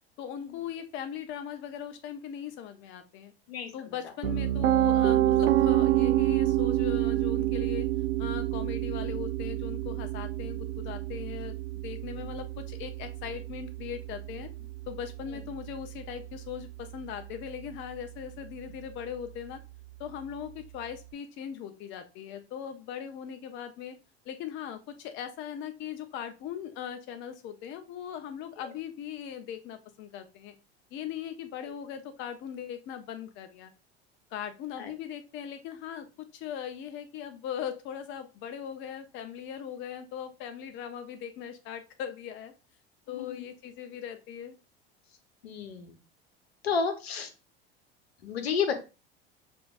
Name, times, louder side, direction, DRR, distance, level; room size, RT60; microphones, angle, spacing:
voice 1, 0.2-3.3 3.7-7.9 8.2-11.6 11.8-14.5 14.9-19.6 20.0-24.0 24.3-30.5 30.9-33.7 34.3-36.1 36.3-42.5 43.1-44.5, left 8 dB, 35° left, 8 dB, 0.5 m, -39 dB
Piano, 4.2-16.1, right 15 dB, 70° right, 0.5 m, -28 dB
voice 2, 43.1-43.5 45.4-46.0 46.6-47.3 48.2-48.7, left 6 dB, 70° left, 7 dB, 0.9 m, -31 dB
6.6 x 2.6 x 2.4 m, 0.30 s
figure-of-eight pair, 75°, 32 cm